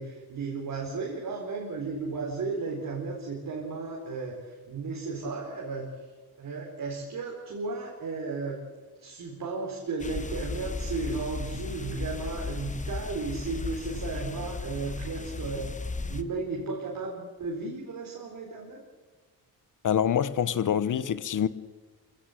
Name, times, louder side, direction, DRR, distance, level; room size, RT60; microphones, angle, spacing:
voice 1, 0.0-5.9 6.4-8.6 9.0-15.8 16.1-18.8, right 3 dB, 60° right, 4.4 m, -34 dB
sound 1, 10.0-16.2, left 3 dB, 20° left, 1.1 m, -35 dB
voice 2, 19.8-21.5, left 9 dB, 55° left, 1.1 m, -25 dB
26.0 x 16.5 x 8.3 m
wide cardioid pair, 150°, 38 cm